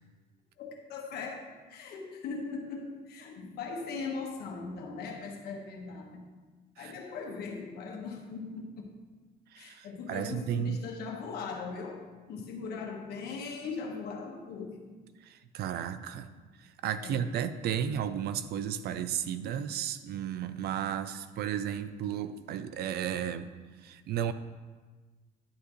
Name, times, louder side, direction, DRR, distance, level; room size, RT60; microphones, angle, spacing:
voice 1, 0.6-6.2 6.8-8.9 9.6-15.0 17.0-17.3, left 4 dB, 70° left, 1 dB, 1.5 m, -39 dB
voice 2, 9.5-10.8 15.2-16.3 16.8-23.5 23.8-24.3, right 9 dB, 70° right, 12 dB, 0.6 m, -33 dB
10.5 x 8.5 x 3.2 m, 1.3 s
cardioid pair, 110°, 17 cm